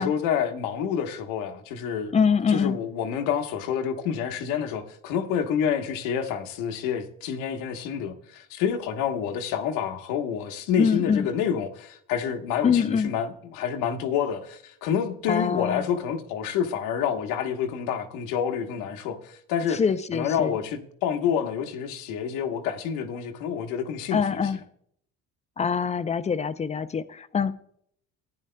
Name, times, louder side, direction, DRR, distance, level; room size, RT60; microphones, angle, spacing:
voice 1, 0.0-2.1 2.5-19.8 20.1-24.4, left 8 dB, 90° left, 1.2 m, -28 dB
voice 2, 2.1-2.8 10.8-11.3 12.6-13.1 15.3-15.9 19.7-20.5 24.1-24.6 25.6-27.5, left 6 dB, 25° left, 0.5 m, -24 dB
15.0 x 9.8 x 2.2 m
cardioid pair, 115°, 30 cm